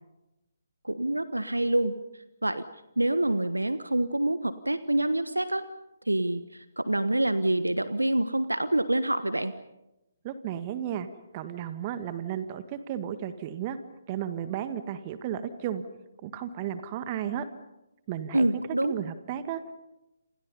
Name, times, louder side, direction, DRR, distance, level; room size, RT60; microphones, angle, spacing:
voice 1, 0.8-1.9 2.4-2.6 3.0-5.6 6.1-9.5 18.3-19.0, right 1 dB, 80° right, 12 dB, 1.3 m, -26 dB
voice 2, 10.2-11.1 11.3-13.8 14.1-15.8 16.2-17.5 18.1-19.7, right 10 dB, 30° right, 11 dB, 1.8 m, -34 dB
30.0 x 28.0 x 5.5 m, 0.95 s
figure-of-eight pair, 135°, 0 cm